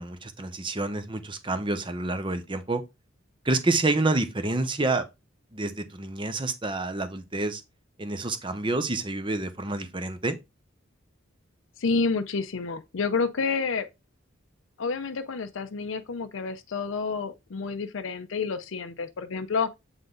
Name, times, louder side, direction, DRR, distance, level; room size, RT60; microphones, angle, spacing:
voice 1, 0.0-2.8 3.4-5.0 5.5-7.6 8.0-10.4, right 2 dB, 25° right, 0.8 m, -28 dB
voice 2, 11.8-13.9 14.8-19.7, left 4 dB, 75° left, 0.6 m, -29 dB
7.9 x 3.8 x 3.8 m
head